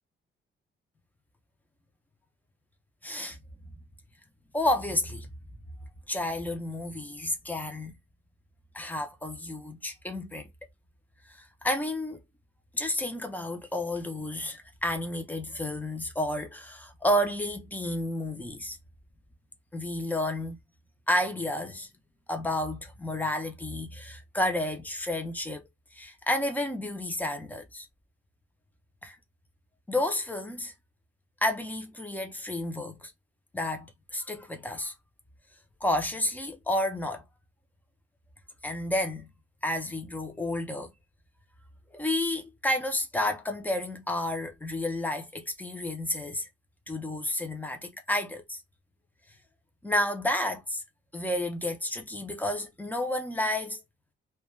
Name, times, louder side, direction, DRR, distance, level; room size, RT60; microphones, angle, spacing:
voice 1, 3.0-3.4 4.5-5.3 6.1-7.9 8.7-10.5 11.3-12.2 12.7-18.8 19.7-20.6 21.1-21.9 22.3-25.6 25.9-27.9 29.0-29.2 29.9-30.7 31.4-33.0 33.5-34.9 35.8-37.2 38.6-39.3 39.6-40.9 41.9-46.5 46.9-48.6 49.8-50.8 51.1-53.8, left 1 dB, 10° left, 0.5 m, -31 dB
2.2 x 2.2 x 3.0 m
wide cardioid pair, 170°, 21 cm